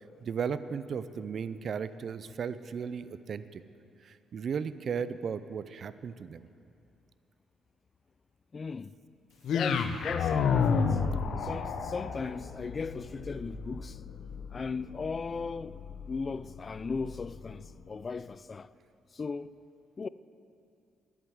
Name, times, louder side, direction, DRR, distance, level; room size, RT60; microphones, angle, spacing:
voice 1, 0.2-3.6 4.0-6.5, right 6 dB, 55° right, 0.5 m, -35 dB
voice 2, 8.5-8.9 9.5-11.0 11.4-14.0 14.5-18.7 19.1-19.5 20.0-20.1, left 4 dB, 35° left, 0.3 m, -37 dB
sound 1, 9.4-17.7, left 6 dB, 70° left, 0.7 m, -32 dB
11.0 x 8.0 x 9.3 m
cardioid pair, 90°, 0 cm